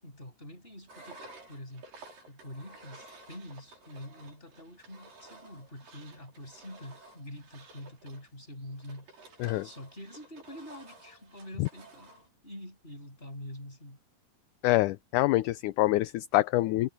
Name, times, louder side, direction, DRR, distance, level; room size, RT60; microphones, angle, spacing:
voice 1, 0.0-1.9 2.3-14.0, left 1 dB, 15° left, 8.1 m, -46 dB
Engine, 0.9-12.3, right 2 dB, 85° right, 6.6 m, -53 dB
voice 2, 14.6-16.9, left 17 dB, 80° left, 2.0 m, -26 dB
omnidirectional pair, 3.8 m